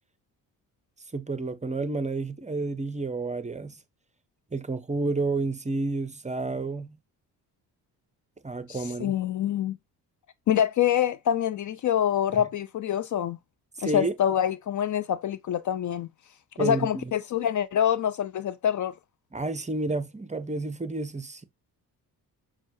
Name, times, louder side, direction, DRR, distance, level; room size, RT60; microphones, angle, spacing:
voice 1, 1.1-3.8 4.5-7.0 8.4-9.2 13.8-14.1 16.6-17.1 19.3-21.4, right 3 dB, 15° right, 0.6 m, -30 dB
voice 2, 8.7-9.8 10.5-13.4 13.8-16.1 16.6-18.9, left 10 dB, 45° left, 0.4 m, -26 dB
6.1 x 2.2 x 2.6 m
supercardioid pair, 55°, 41 cm